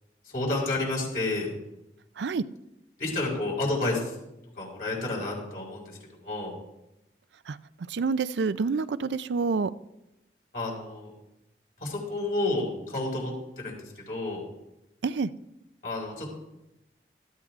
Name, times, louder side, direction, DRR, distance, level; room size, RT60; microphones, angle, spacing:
voice 1, 0.2-1.5 3.0-4.2 4.5-6.6 10.5-11.1 11.8-14.5 15.8-16.3, left 2 dB, 55° left, -3 dB, 5.1 m, -30 dB
voice 2, 7.9-9.7 15.0-15.3, right 4 dB, 80° right, 15 dB, 0.4 m, -27 dB
16.5 x 14.0 x 2.5 m, 0.91 s
head